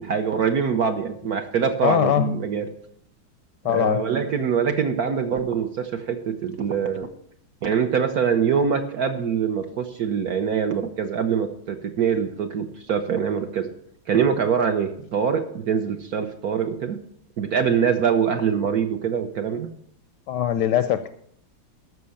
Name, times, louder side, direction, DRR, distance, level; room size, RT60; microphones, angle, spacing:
voice 1, 0.0-2.7 3.7-7.1 7.6-13.7 14.1-17.0 17.4-19.7, right 7 dB, 60° right, 7 dB, 1.1 m, -24 dB
voice 2, 1.8-2.4 3.6-4.0 20.3-21.1, left 10 dB, 75° left, 12 dB, 1.0 m, -21 dB
13.0 x 6.0 x 7.0 m, 0.68 s
omnidirectional pair, 2.2 m